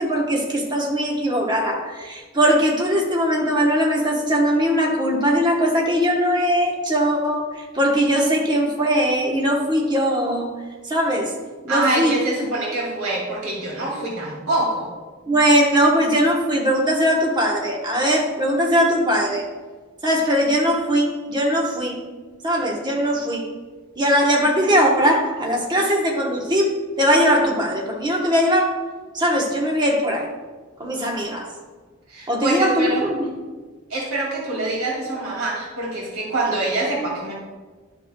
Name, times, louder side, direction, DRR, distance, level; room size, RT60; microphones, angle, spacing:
voice 1, 0.0-10.5 10.8-11.4 11.6-12.2 15.3-19.5 20.0-22.0 22.4-23.5 24.0-28.8 29.1-30.3 30.8-31.5 32.3-33.3, equal, 20° right, 0 dB, 0.9 m, -20 dB
voice 2, 11.7-14.9 32.1-33.0 33.9-37.3, right 2 dB, 90° right, -4 dB, 2.2 m, -25 dB
10.5 x 6.1 x 2.2 m, 1.4 s
head